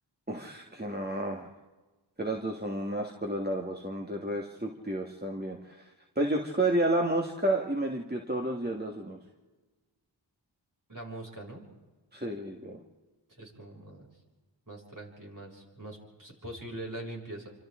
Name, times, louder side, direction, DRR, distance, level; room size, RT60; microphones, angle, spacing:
voice 1, 0.3-1.5 2.2-5.8 6.2-9.2 12.1-12.8, right 1 dB, 20° right, 0 dB, 1.9 m, -31 dB
voice 2, 10.9-11.6 13.4-14.1 14.7-17.5, right 1 dB, 45° right, -2 dB, 6.5 m, -42 dB
28.0 x 25.5 x 3.8 m, 1.3 s
wide cardioid pair, 50°, 45 cm